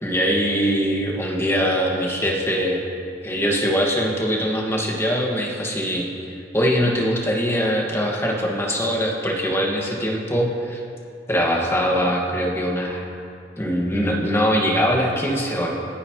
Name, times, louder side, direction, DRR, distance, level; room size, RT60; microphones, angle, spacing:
voice 1, 0.0-2.8 3.2-6.1 6.5-10.8 11.3-13.0 13.6-15.7, equal, 15° left, -2 dB, 2.0 m, -22 dB
28.5 x 9.7 x 3.2 m, 2.4 s
head